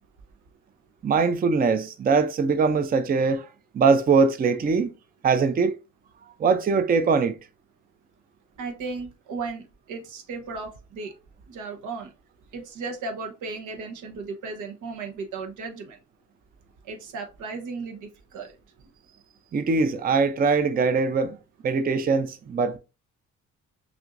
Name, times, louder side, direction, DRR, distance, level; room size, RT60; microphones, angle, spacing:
voice 1, 1.0-3.5 3.7-4.9 5.2-5.7 6.4-7.4 19.5-21.4 21.6-22.8, right 4 dB, 30° right, 0.5 m, -22 dB
voice 2, 8.6-11.1 11.5-12.1 12.5-16.0 16.8-18.5, right 4 dB, 85° right, 1.0 m, -35 dB
5.9 x 2.6 x 2.5 m
cardioid pair, 90°, 30 cm